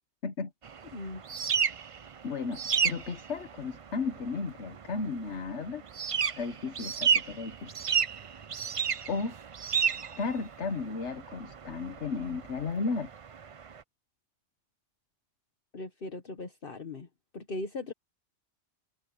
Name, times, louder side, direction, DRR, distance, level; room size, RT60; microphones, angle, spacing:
sound 1, 0.6-13.8, right 7 dB, 40° right, 0.5 m, -32 dB
voice 1, 0.9-1.2 15.7-17.1 17.3-17.9, left 2 dB, 55° left, 1.5 m, -38 dB
voice 2, 2.2-5.8 6.4-7.7 9.1-9.3 10.2-13.1, left 4 dB, 80° left, 1.5 m, -34 dB
open air
omnidirectional pair, 1.1 m